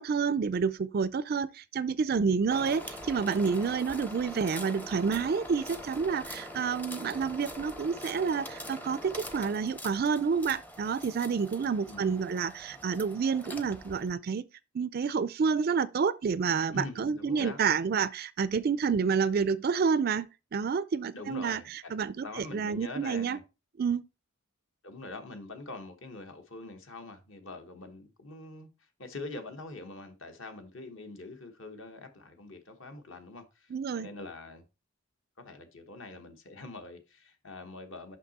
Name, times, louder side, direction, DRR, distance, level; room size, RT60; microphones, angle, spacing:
voice 1, 0.0-14.4 14.7-21.6 21.9-23.4 23.8-24.0 33.7-34.1, right 5 dB, 45° right, 0.3 m, -29 dB
sound 1, 2.5-14.1, equal, 10° left, 0.6 m, -43 dB
voice 2, 11.9-12.3 16.7-17.6 21.1-21.9 22.2-23.4 24.8-34.7 35.4-38.2, left 2 dB, 60° left, 1.2 m, -44 dB
5.9 x 5.7 x 4.1 m
head